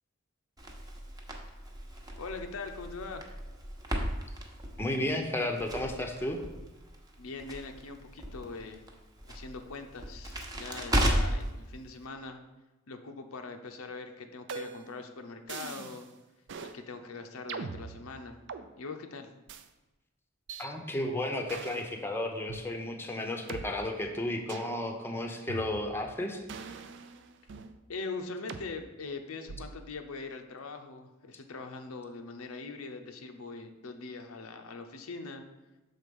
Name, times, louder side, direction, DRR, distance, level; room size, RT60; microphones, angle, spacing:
Crackle, 0.6-11.5, equal, 20° right, 0.9 m, -35 dB
voice 1, 2.2-3.2 7.2-8.9 9.3-12.4 12.9-16.1 16.6-18.4 18.8-19.3 27.9-35.4, left 3 dB, 85° left, 5 dB, 0.7 m, -42 dB
voice 2, 4.8-6.4 20.6-26.4, left 1 dB, 10° left, 3 dB, 0.7 m, -33 dB
sound 1, 14.5-15.0 15.5-16.1 16.5-16.8 17.5-18.7 19.5-19.7 20.5-20.7 21.5-21.9 22.5-22.6 23.5-23.6 24.5-24.8 25.5-26.1 26.5-27.8 28.5-28.7 29.5-29.9, right 5 dB, 60° right, 0.4 m, -42 dB
6.5 x 3.8 x 5.3 m, 1.1 s
head